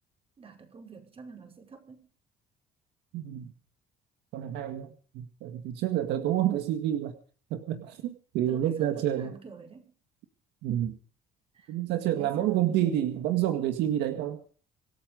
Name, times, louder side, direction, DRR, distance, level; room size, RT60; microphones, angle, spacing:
voice 1, 0.4-2.1 8.5-9.9 11.5-11.8 12.1-13.1, right 5 dB, 35° right, 3 dB, 5.4 m, -47 dB
voice 2, 3.1-3.5 4.3-7.2 7.5-9.4 10.6-11.0 11.7-14.4, right 12 dB, 85° right, 7 dB, 2.0 m, -29 dB
25.5 x 8.7 x 5.3 m, 0.43 s
cardioid pair, 110°, 17 cm